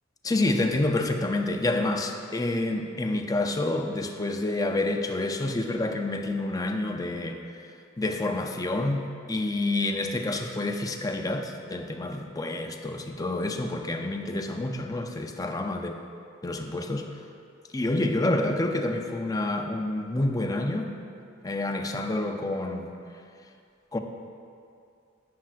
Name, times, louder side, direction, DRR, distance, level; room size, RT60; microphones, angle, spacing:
voice 1, 0.2-7.4 8.0-15.9 16.4-17.1 17.7-21.0 21.4-22.9 23.9-24.0, left 2 dB, 20° left, 4 dB, 0.5 m, -28 dB
11.5 x 8.5 x 2.5 m, 2.4 s
head